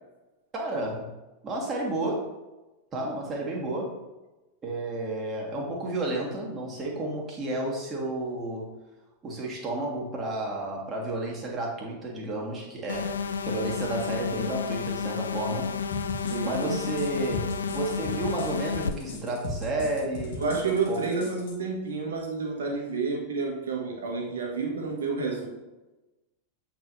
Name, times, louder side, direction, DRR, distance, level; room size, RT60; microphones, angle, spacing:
voice 1, 0.5-1.1 1.4-2.3 2.9-3.9 4.6-8.7 9.2-13.1 13.4-15.7 16.5-20.4 20.9-21.1, right 2 dB, 25° right, -3 dB, 1.8 m, -31 dB
sound 1, 12.9-18.9, left 6 dB, 70° left, 0.4 m, -31 dB
sound 2, 15.9-21.5, left 2 dB, 55° left, 1.2 m, -38 dB
voice 2, 16.2-16.8 20.4-25.5, right 4 dB, 65° right, 0 dB, 1.4 m, -30 dB
8.0 x 4.6 x 2.7 m, 1.1 s
figure-of-eight pair, 90°, 0 cm